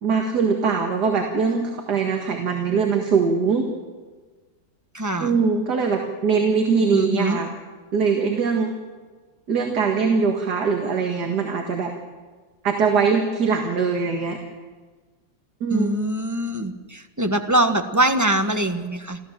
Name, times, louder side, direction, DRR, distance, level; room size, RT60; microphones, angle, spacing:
voice 1, 0.0-3.7 5.2-7.5 7.9-8.7 9.5-11.9 12.6-14.4 15.6-15.9, right 5 dB, 65° right, 2 dB, 2.3 m, -22 dB
voice 2, 4.9-5.4 6.9-7.4 15.7-19.2, right 1 dB, 10° right, 6 dB, 1.2 m, -23 dB
28.5 x 14.0 x 7.5 m, 1.4 s
omnidirectional pair, 1.9 m